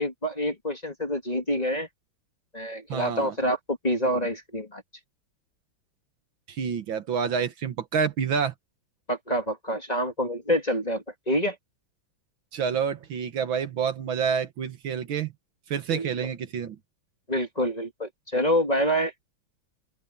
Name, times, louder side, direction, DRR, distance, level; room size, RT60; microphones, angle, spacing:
voice 1, 0.0-1.9 2.5-4.8 9.1-11.6 15.9-16.1 17.3-19.1, equal, 20° left, 2.5 m, -27 dB
voice 2, 2.9-3.4 6.5-8.5 12.5-15.3 15.7-16.8, right 7 dB, 65° right, 1.9 m, -28 dB
open air
omnidirectional pair, 2.4 m